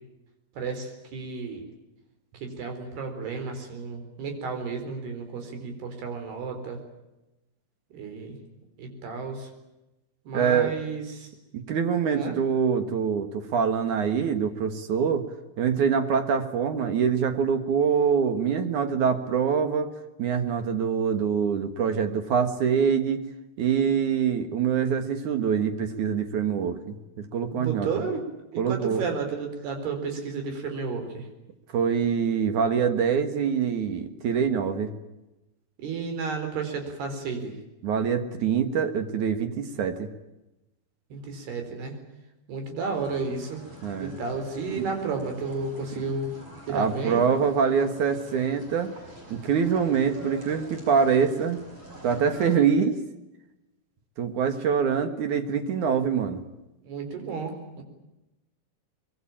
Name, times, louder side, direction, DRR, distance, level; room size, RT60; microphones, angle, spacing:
voice 1, 0.6-1.7 2.3-6.8 7.9-8.4 8.8-9.5 10.3-11.3 12.1-12.4 27.5-28.2 28.5-31.3 35.8-37.5 41.1-42.0 42.5-43.6 44.0-46.3 46.7-47.2 56.8-57.8, right 4 dB, 85° right, 5 dB, 6.3 m, -32 dB
voice 2, 10.3-10.7 11.5-15.3 15.6-23.2 23.6-27.9 28.6-29.0 31.7-34.9 37.8-40.1 43.8-44.2 44.8-44.9 46.7-48.9 49.3-51.6 52.0-53.0 54.2-56.4, right 7 dB, 60° right, 9 dB, 2.6 m, -25 dB
sound 1, 42.9-52.5, right 1 dB, 35° right, 7.1 m, -46 dB
24.0 x 22.5 x 8.9 m, 0.96 s
omnidirectional pair, 4.5 m